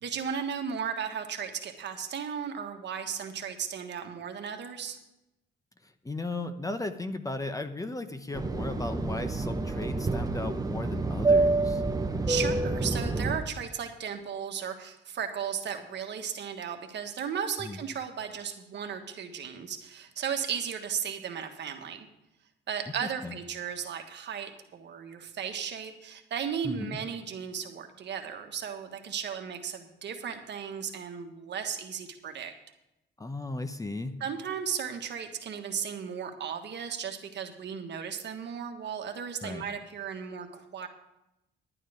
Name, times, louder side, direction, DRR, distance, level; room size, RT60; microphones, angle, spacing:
voice 1, 0.0-5.0 12.3-22.1 22.7-32.5 34.2-40.9, right 7 dB, 60° right, 5 dB, 1.4 m, -35 dB
voice 2, 5.8-11.8 17.6-17.8 23.2-23.4 26.6-27.0 33.2-34.1 39.4-39.6, left 2 dB, 15° left, 9 dB, 0.8 m, -36 dB
Fixed-wing aircraft airplane, 8.3-13.4, right 3 dB, 20° right, 1.0 m, -28 dB
11.0 x 9.3 x 5.0 m, 0.90 s
cardioid pair, 90°, 20 cm